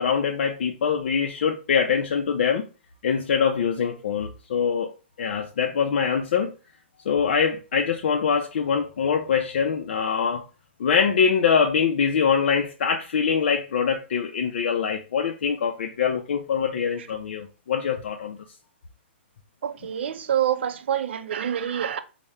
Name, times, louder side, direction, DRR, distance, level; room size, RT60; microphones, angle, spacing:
voice 1, 0.0-2.7 3.0-4.9 5.2-6.5 7.1-10.4 10.8-18.4, left 6 dB, 65° left, 0.5 m, -23 dB
voice 2, 19.6-22.0, right 10 dB, 65° right, 0.4 m, -26 dB
3.5 x 2.1 x 4.2 m
hypercardioid pair, 160°, 6 cm